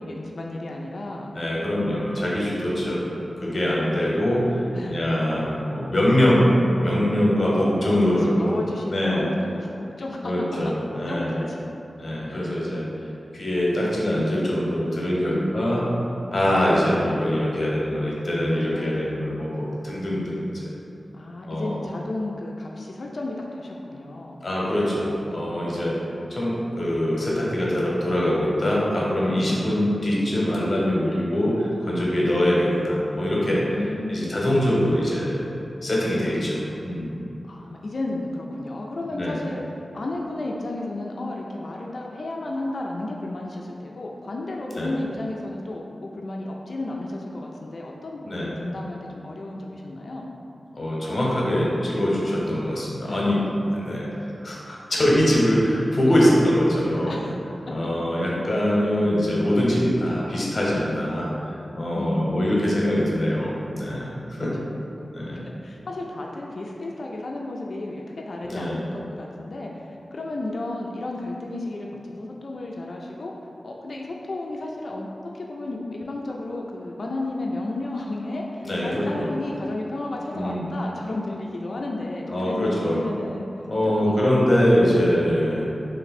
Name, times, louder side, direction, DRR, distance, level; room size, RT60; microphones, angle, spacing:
voice 1, 0.0-1.4 2.4-3.0 4.7-5.0 7.4-10.3 11.1-11.6 12.3-12.5 15.3-16.0 16.3-16.6 18.5-19.4 21.1-24.4 25.8-26.3 33.7-34.4 36.2-36.7 37.5-39.6 39.9-50.2 53.0-53.3 54.9-55.0 56.8-57.3 61.9-62.6 65.0-73.3 73.6-75.1 75.3-83.5 84.0-84.2 84.9-85.2, left 2 dB, 65° left, -1 dB, 0.3 m, -33 dB
voice 2, 1.3-3.0 3.4-8.5 8.9-9.2 10.2-11.4 12.0-12.9 13.3-15.8 16.3-20.7 21.5-21.8 24.4-26.0 26.3-33.6 34.1-35.4 35.8-37.1 39.1-39.4 44.7-44.9 48.3-48.5 50.7-53.4 53.7-57.2 57.7-61.3 61.7-64.5 65.1-65.4 68.4-68.8 78.6-79.3 80.3-80.6 82.3-83.0 83.7-85.7, equal, 50° left, -5 dB, 0.9 m, -23 dB
3.1 x 2.5 x 4.1 m, 2.7 s
wide cardioid pair, 75°, 0 cm